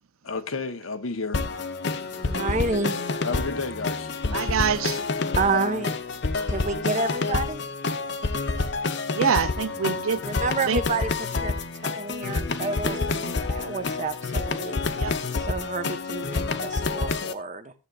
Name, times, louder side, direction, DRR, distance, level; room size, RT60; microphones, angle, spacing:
voice 1, 0.2-1.5 3.2-4.1 5.5-5.7, left 4 dB, 80° left, 0.9 m, -31 dB
sound 1, 1.3-17.3, left 3 dB, 55° left, 0.7 m, -28 dB
voice 2, 2.1-3.0 5.4-6.0 6.5-7.6 10.2-11.5 11.8-14.8 15.3-17.7, right 3 dB, 35° right, 1.0 m, -29 dB
voice 3, 4.3-5.0 9.1-10.2 10.6-10.8 15.0-15.1, right 7 dB, 85° right, 0.6 m, -25 dB
13.5 x 8.1 x 2.4 m
head